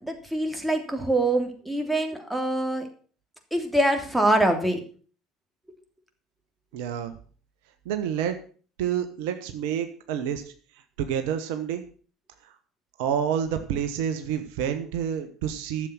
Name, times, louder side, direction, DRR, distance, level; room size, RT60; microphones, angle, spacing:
voice 1, 0.0-2.8 3.5-4.8, right 1 dB, 5° right, 4 dB, 3.1 m, -24 dB
voice 2, 6.7-7.1 7.8-8.4 8.8-10.4 11.0-11.8 13.0-15.9, right 8 dB, 70° right, 8 dB, 1.2 m, -28 dB
12.0 x 7.5 x 6.5 m, 0.42 s
figure-of-eight pair, 60°, 0 cm